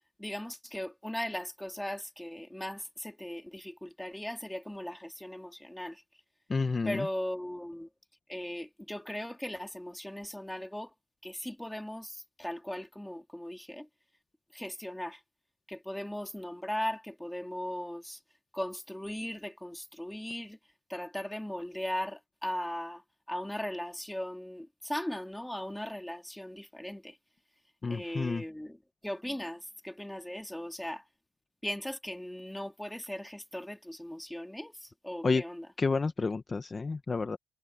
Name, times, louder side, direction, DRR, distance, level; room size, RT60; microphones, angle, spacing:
voice 1, 0.2-6.0 6.8-7.9 8.3-10.9 11.2-13.9 14.5-15.2 15.7-18.2 18.5-20.6 20.9-23.0 23.3-27.2 27.9-28.8 29.0-31.0 31.6-35.7, left 1 dB, 5° left, 3.0 m, -38 dB
voice 2, 6.5-7.1 27.8-28.4 35.2-35.4 35.8-37.4, left 4 dB, 30° left, 1.2 m, -30 dB
cardioid pair, 90°, 0 cm